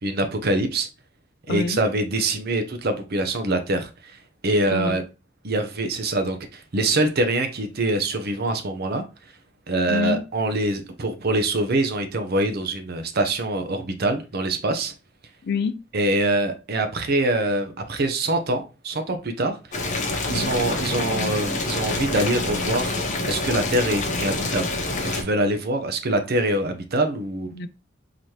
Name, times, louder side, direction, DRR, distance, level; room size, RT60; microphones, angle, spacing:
voice 1, 0.0-0.9 1.5-5.0 5.4-9.0 9.7-14.9 15.9-19.9 20.3-27.5, right 2 dB, 55° right, 0.7 m, -24 dB
voice 2, 1.5-1.8 4.7-5.0 9.9-10.2 15.4-15.8 20.3-20.5 27.5-27.7, left 4 dB, 55° left, 0.4 m, -26 dB
Boiling, 19.7-25.2, left 2 dB, 40° left, 0.9 m, -26 dB
4.0 x 2.9 x 3.1 m
head